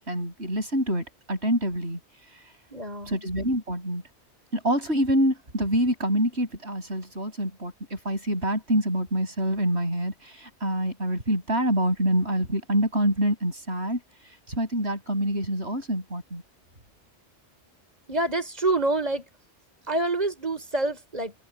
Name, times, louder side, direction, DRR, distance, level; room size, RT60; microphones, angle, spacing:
voice 1, 0.1-2.0 3.1-4.0 4.5-14.0 14.5-16.4, right 1 dB, 70° right, 7.5 m, -26 dB
voice 2, 2.7-3.2 18.1-19.3 19.9-21.3, right 2 dB, 35° right, 5.9 m, -27 dB
omnidirectional pair, 1.2 m